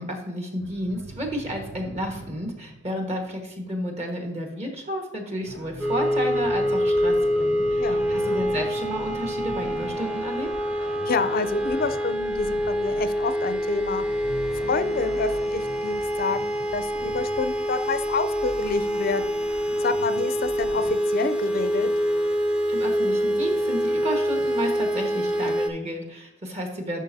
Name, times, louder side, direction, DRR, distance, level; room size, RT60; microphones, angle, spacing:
voice 1, 0.0-10.5 22.7-27.0, equal, 35° right, 2 dB, 1.4 m, -32 dB
sound 1, 0.6-3.7 5.4-11.1 14.1-16.5, right 3 dB, 70° right, 0.5 m, -42 dB
sound 2, 5.8-25.7, equal, 5° right, 0.7 m, -25 dB
sound 3, 6.1-20.9, equal, 85° right, 2.0 m, -45 dB
voice 2, 11.1-14.0 14.5-19.4 19.8-21.9, left 4 dB, 50° left, 12 dB, 0.5 m, -28 dB
12.0 x 5.2 x 2.7 m, 0.95 s
head